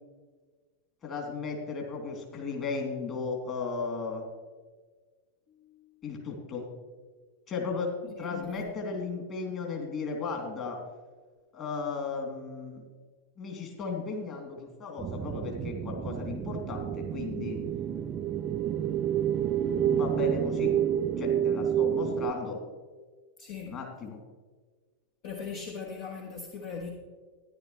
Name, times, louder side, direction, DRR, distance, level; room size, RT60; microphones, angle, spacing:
voice 1, 1.0-4.3 6.0-6.7 7.5-7.9 8.2-10.8 11.5-12.8 13.4-17.6 19.9-20.7 21.2-22.6 23.7-24.2, left 4 dB, 30° left, 0 dB, 2.7 m, -35 dB
voice 2, 5.5-5.9 8.1-8.7 23.4-23.8 25.2-26.9, left 5 dB, 50° left, -1 dB, 1.3 m, -40 dB
sound 1, 15.0-22.3, right 10 dB, 30° right, 0.4 m, -29 dB
13.5 x 11.0 x 3.1 m, 1.4 s
figure-of-eight pair, 90°, 0 cm